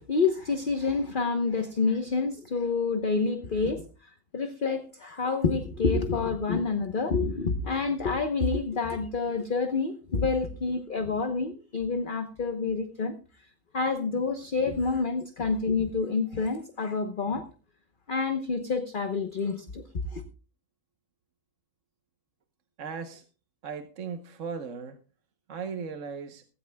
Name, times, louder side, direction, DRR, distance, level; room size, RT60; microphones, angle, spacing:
voice 1, 0.0-13.1 13.7-17.5 18.1-19.8 20.1-20.2, left 4 dB, 40° left, 7 dB, 1.1 m, -28 dB
voice 2, 22.8-23.3 23.6-25.0 25.5-26.4, right 6 dB, 60° right, 7 dB, 1.4 m, -37 dB
17.5 x 16.0 x 2.3 m, 0.35 s
omnidirectional pair, 1.5 m